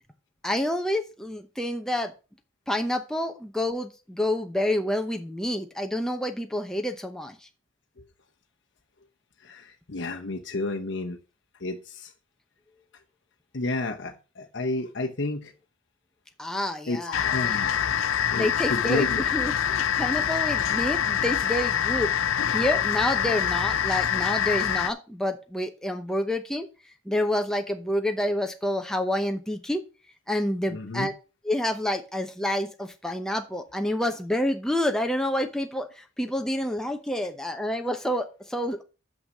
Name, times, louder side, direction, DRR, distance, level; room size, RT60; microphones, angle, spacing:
voice 1, 0.4-2.1 2.7-7.5 16.4-17.6 18.3-29.8 30.3-31.1 31.4-38.8, left 1 dB, 5° left, 0.8 m, -28 dB
voice 2, 9.4-11.2 11.6-12.1 13.5-15.5 16.9-17.7 18.3-19.2 30.7-31.1, left 2 dB, 60° left, 0.9 m, -31 dB
sound 1, 17.1-24.9, left 9 dB, 80° left, 0.5 m, -25 dB
6.5 x 5.7 x 6.4 m
head